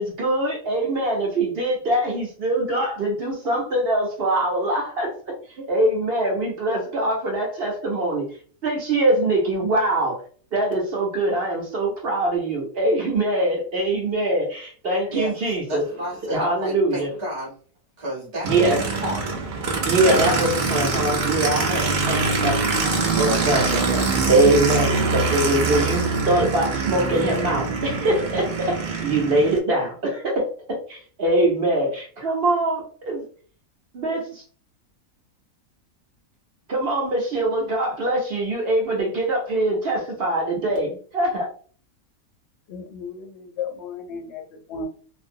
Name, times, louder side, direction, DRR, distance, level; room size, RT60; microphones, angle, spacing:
voice 1, 0.0-5.1 5.7-8.2 8.6-10.1 10.5-15.8 16.3-17.1 18.4-18.8 19.9-23.8 24.3-28.7 29.0-30.4 30.9-33.2 33.9-34.4 36.7-41.5, right 1 dB, 55° right, -1 dB, 0.7 m, -23 dB
voice 2, 15.1-17.6 18.0-19.4 19.9-20.3 23.8-24.2, equal, 25° right, -5 dB, 0.8 m, -32 dB
Aircraft, 18.4-29.6, right 4 dB, 85° right, 0.4 m, -24 dB
voice 3, 42.7-44.8, left 5 dB, 65° left, 4 dB, 0.7 m, -34 dB
2.5 x 2.0 x 2.6 m, 0.43 s
omnidirectional pair, 1.5 m